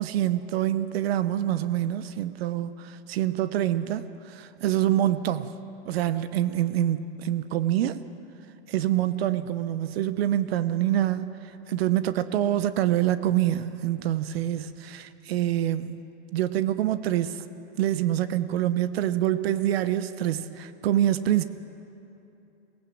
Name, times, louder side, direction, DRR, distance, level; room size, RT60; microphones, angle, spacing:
voice 1, 0.0-5.5 5.9-8.0 8.7-11.3 11.7-16.0 16.3-17.4 17.8-21.4, right 12 dB, 65° right, 13 dB, 1.0 m, -26 dB
22.0 x 18.5 x 7.8 m, 2.8 s
hypercardioid pair, 125°, 33 cm